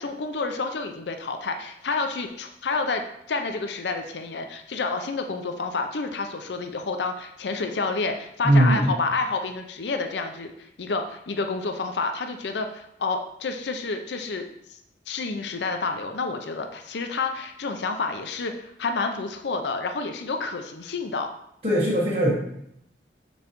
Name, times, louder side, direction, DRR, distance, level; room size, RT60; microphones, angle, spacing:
voice 1, 0.0-10.5 10.8-14.8 15.1-21.3, left 3 dB, 80° left, 6 dB, 0.6 m, -29 dB
voice 2, 8.4-8.9 21.6-22.3, right 1 dB, 35° right, -8 dB, 1.4 m, -19 dB
6.1 x 5.3 x 3.0 m, 0.75 s
head